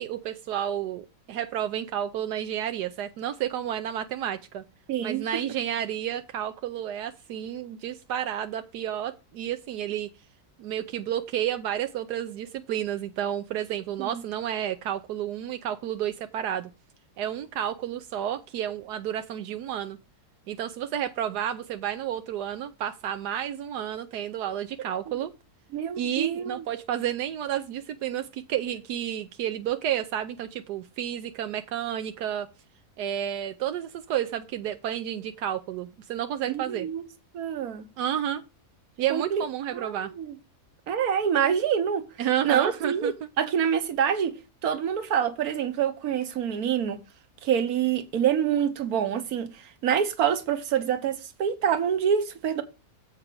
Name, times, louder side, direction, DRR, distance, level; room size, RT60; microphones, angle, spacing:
voice 1, 0.0-4.6 5.0-10.1 10.6-16.7 17.2-20.0 20.5-25.3 26.0-32.5 33.0-36.9 38.0-38.4 39.0-40.1 42.2-43.1, right 10 dB, 85° right, 1.3 m, -31 dB
voice 2, 4.9-5.4 14.0-14.2 24.8-24.9 25.7-26.6 36.5-37.1 37.3-37.8 39.1-39.4 39.7-40.3 40.9-42.0 42.4-44.3 44.6-47.0 47.4-52.6, right 8 dB, 70° right, 1.5 m, -26 dB
7.5 x 5.8 x 5.0 m
omnidirectional pair, 1.7 m